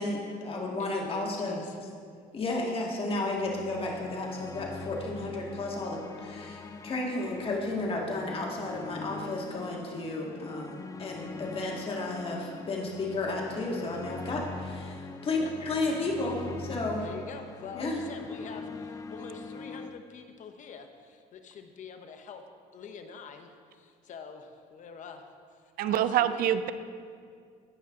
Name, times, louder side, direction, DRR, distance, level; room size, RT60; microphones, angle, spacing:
voice 1, 0.0-1.6 2.3-17.0 17.7-18.0, left 2 dB, 35° left, -1 dB, 1.9 m, -33 dB
voice 2, 0.8-1.8 15.4-15.5 17.0-22.4 22.7-25.2 25.5-25.6 25.9-26.5, left 6 dB, 50° left, 6 dB, 0.9 m, -45 dB
sound 1, 3.4-19.9, left 4 dB, 20° left, 0.4 m, -43 dB
voice 3, 25.8-26.7, right 11 dB, 65° right, 12 dB, 0.5 m, -25 dB
17.0 x 5.6 x 3.7 m, 2.1 s
cardioid pair, 110°, 16 cm